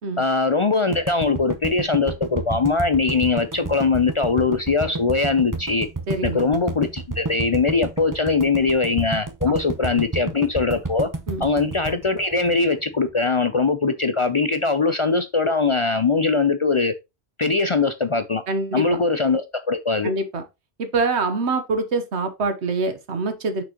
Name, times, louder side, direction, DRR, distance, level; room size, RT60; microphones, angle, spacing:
voice 1, 0.2-5.9 6.2-11.1 11.4-16.9 17.4-18.4 18.7-20.1, left 4 dB, 45° left, 0.4 m, -21 dB
sound 1, 0.9-13.1, right 3 dB, 20° right, 0.7 m, -30 dB
voice 2, 6.1-6.5 9.5-9.6 9.9-10.0 11.3-11.5 18.5-19.0 20.0-20.5 20.8-23.6, right 3 dB, 75° right, 1.4 m, -25 dB
6.1 x 6.0 x 2.9 m
omnidirectional pair, 1.1 m